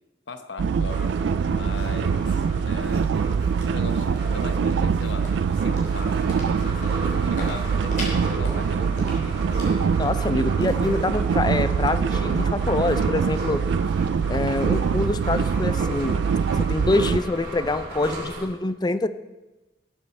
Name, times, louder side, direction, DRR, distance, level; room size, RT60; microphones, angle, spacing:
voice 1, 0.3-1.2 1.5-3.1 3.6-9.9, left 3 dB, 85° left, 9 dB, 1.0 m, -39 dB
sound 1, 0.6-17.2, right 6 dB, 85° right, 0.3 m, -24 dB
sound 2, 0.9-18.4, right 1 dB, 65° right, 3.1 m, -35 dB
sound 3, 2.9-15.0, left 1 dB, 45° left, 3.3 m, -43 dB
voice 2, 10.0-13.6 14.3-16.2 16.5-19.1, left 2 dB, 25° left, 13 dB, 0.5 m, -25 dB
19.0 x 7.4 x 4.3 m, 1.1 s
head